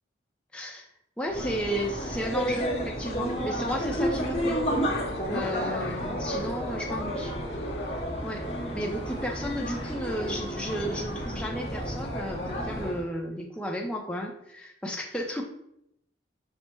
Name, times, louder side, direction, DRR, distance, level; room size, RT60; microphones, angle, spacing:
voice 1, 0.5-0.9 1.2-4.6 5.3-7.3 8.2-8.5 8.7-15.4, equal, 5° left, 0 dB, 0.5 m, -33 dB
sound 1, 1.3-13.0, equal, 30° left, 0.9 m, -31 dB
sound 2, 3.4-10.2, left 4 dB, 55° left, 0.4 m, -43 dB
5.6 x 2.1 x 4.4 m, 0.77 s
head